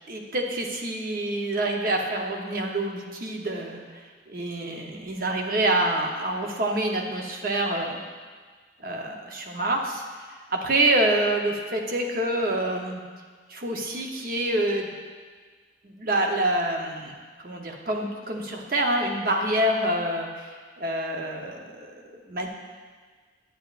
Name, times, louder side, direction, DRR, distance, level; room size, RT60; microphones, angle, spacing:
voice 1, 0.1-8.0 8.8-10.0 10.5-13.0 13.5-14.9 15.8-17.1 17.4-22.5, right 1 dB, 50° right, 1 dB, 0.9 m, -27 dB
9.2 x 8.9 x 2.5 m, 1.5 s
head